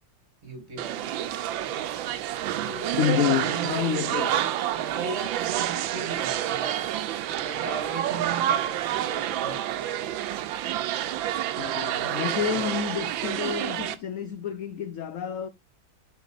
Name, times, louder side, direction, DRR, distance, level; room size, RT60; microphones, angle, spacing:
voice 1, 0.4-1.4 2.6-6.8 7.3-10.1, right 4 dB, 40° right, 2.5 m, -38 dB
sound 1, 0.8-14.0, right 12 dB, 90° right, 1.4 m, -29 dB
voice 2, 2.9-4.4 11.6-15.5, left 9 dB, 70° left, 0.7 m, -29 dB
11.5 x 5.0 x 2.5 m
omnidirectional pair, 2.0 m